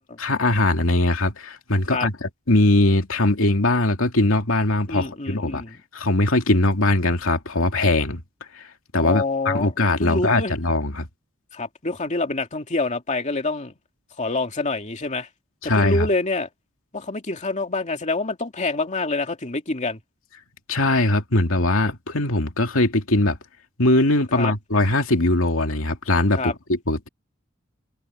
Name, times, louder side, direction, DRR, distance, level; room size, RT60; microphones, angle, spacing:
voice 1, 0.2-5.6 5.9-8.2 8.6-8.7 8.9-11.1 15.6-16.1 20.7-23.4 23.8-27.1, left 2 dB, 85° left, 2.5 m, -21 dB
voice 2, 4.9-5.8 9.0-10.6 11.5-13.7 14.2-15.3 15.7-16.5 16.9-20.0 24.3-24.5 26.3-26.5, left 3 dB, 35° left, 2.6 m, -26 dB
head